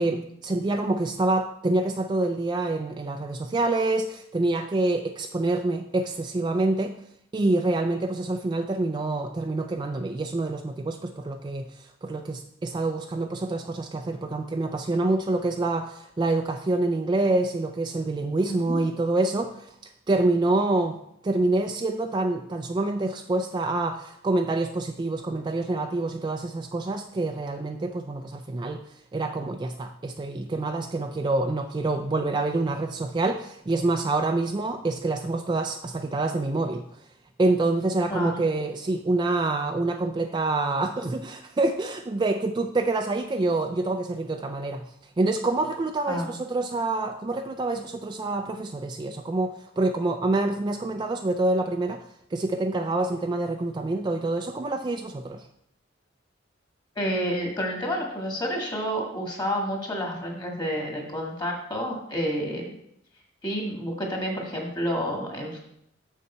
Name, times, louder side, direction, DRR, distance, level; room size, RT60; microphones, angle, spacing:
voice 1, 0.0-6.9 7.3-19.6 20.1-21.0 21.2-28.8 29.1-36.8 37.4-44.9 45.2-52.0 52.3-55.4, right 2 dB, 25° right, 5 dB, 0.3 m, -26 dB
voice 2, 18.5-18.8 38.1-38.4 46.1-46.3 57.0-62.6 63.4-65.6, equal, 20° left, 0 dB, 1.8 m, -29 dB
6.7 x 6.6 x 4.3 m, 0.73 s
head